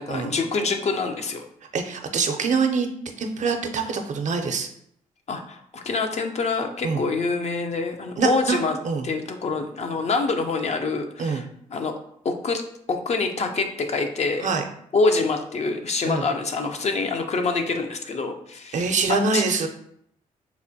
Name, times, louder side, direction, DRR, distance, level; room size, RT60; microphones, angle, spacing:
voice 1, 0.0-1.4 5.3-8.8 9.0-11.9 12.2-12.6 12.9-14.5 14.9-18.8 19.1-19.4, left 3 dB, 45° left, 5 dB, 0.5 m, -26 dB
voice 2, 1.7-2.9 3.2-4.7 6.8-7.0 8.2-9.1 11.2-11.4 14.4-14.6 16.1-16.3 18.7-19.7, right 4 dB, 55° right, 5 dB, 0.5 m, -24 dB
4.1 x 2.1 x 2.7 m, 0.70 s
supercardioid pair, 55°, 15 cm